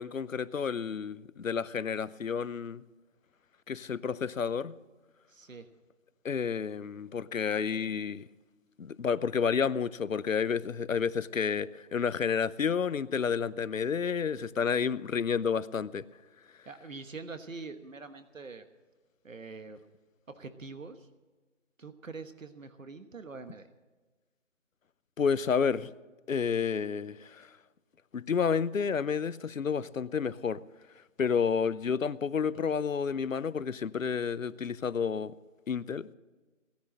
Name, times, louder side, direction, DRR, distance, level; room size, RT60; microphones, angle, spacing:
voice 1, 0.0-2.8 3.7-4.7 6.2-8.3 8.8-16.1 25.2-25.9 26.3-27.5 28.1-30.6 31.2-35.3 35.7-36.1, left 6 dB, 85° left, 0.7 m, -30 dB
voice 2, 5.3-5.7 16.6-18.7 19.2-19.8 20.3-21.1 21.8-23.7, right 4 dB, 85° right, 1.4 m, -44 dB
17.5 x 10.5 x 6.4 m
figure-of-eight pair, 170°, 38 cm